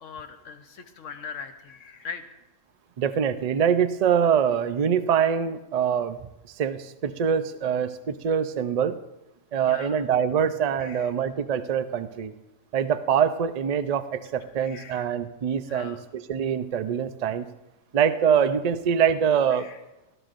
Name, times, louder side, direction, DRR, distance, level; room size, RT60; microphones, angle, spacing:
voice 1, 0.0-2.2 9.6-10.0 10.8-11.1 14.6-15.1 15.6-16.0 19.5-19.8, left 6 dB, 65° left, 8 dB, 1.2 m, -40 dB
voice 2, 3.0-6.2 6.6-9.0 9.5-12.3 12.7-17.5 17.9-19.7, right 8 dB, 65° right, 11 dB, 0.4 m, -24 dB
20.0 x 13.0 x 2.6 m, 0.99 s
omnidirectional pair, 1.4 m